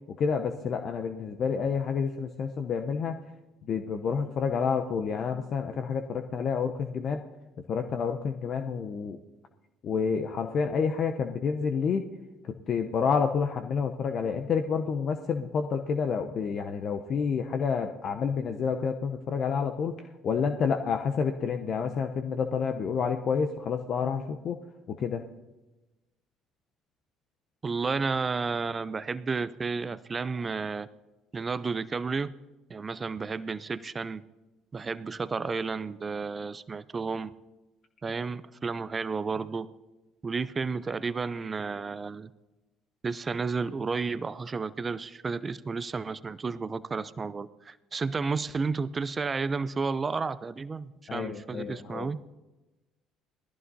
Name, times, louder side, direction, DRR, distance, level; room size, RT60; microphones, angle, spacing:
voice 1, 0.2-3.2 3.7-7.2 7.7-9.2 9.8-12.0 12.4-24.6 24.9-25.2 51.1-52.1, left 6 dB, 50° left, 6 dB, 0.7 m, -29 dB
voice 2, 27.6-30.9 31.3-32.3 32.7-34.2 34.7-37.3 38.0-39.7 40.2-42.3 43.0-52.2, right 4 dB, 30° right, 16 dB, 0.5 m, -32 dB
20.5 x 14.5 x 2.8 m, 1.1 s
hypercardioid pair, 55°, 0 cm